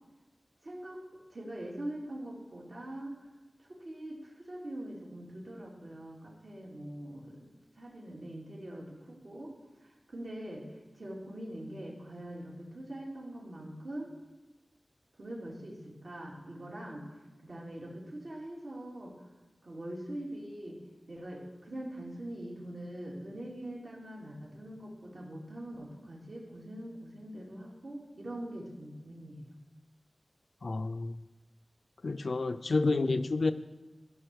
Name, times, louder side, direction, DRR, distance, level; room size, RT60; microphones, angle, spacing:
voice 1, 0.6-1.0 1.3-3.1 3.6-9.5 9.8-14.1 15.2-17.1 17.4-19.1 19.6-20.8 21.1-29.5, right 1 dB, 70° right, 2.7 m, -43 dB
voice 2, 30.6-31.1 32.0-33.5, left 3 dB, 75° left, 0.5 m, -29 dB
14.0 x 5.6 x 6.3 m
wide cardioid pair, 60°, 0 cm